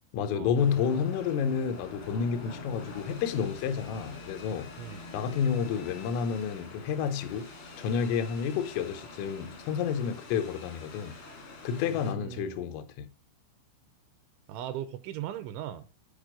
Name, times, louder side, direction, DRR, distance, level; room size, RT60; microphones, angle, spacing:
voice 1, 0.1-4.7 5.1-7.5 7.8-11.2 11.6-13.1, left 7 dB, 85° left, 3.4 m, -30 dB
sound 1, 0.5-12.1, left 3 dB, 70° left, 1.2 m, -46 dB
voice 2, 11.9-12.6 14.5-15.9, right 11 dB, 85° right, 2.9 m, -38 dB
9.4 x 4.5 x 4.9 m
omnidirectional pair, 5.8 m